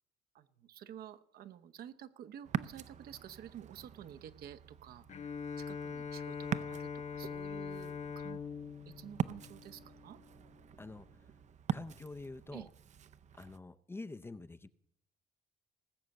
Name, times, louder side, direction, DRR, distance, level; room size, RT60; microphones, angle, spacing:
voice 1, 0.3-5.3 5.6-8.4 8.9-10.2 12.5-12.7, right 10 dB, 65° right, 10 dB, 1.0 m, -51 dB
Ocean, 2.4-13.6, right 8 dB, 45° right, 0.6 m, -43 dB
Bowed string instrument, 5.1-10.4, left 6 dB, 40° left, 1.0 m, -43 dB
voice 2, 11.7-12.7 13.4-14.7, left 3 dB, 15° left, 12 dB, 0.6 m, -46 dB
19.0 x 7.1 x 7.8 m, 0.72 s
cardioid pair, 110°, 17 cm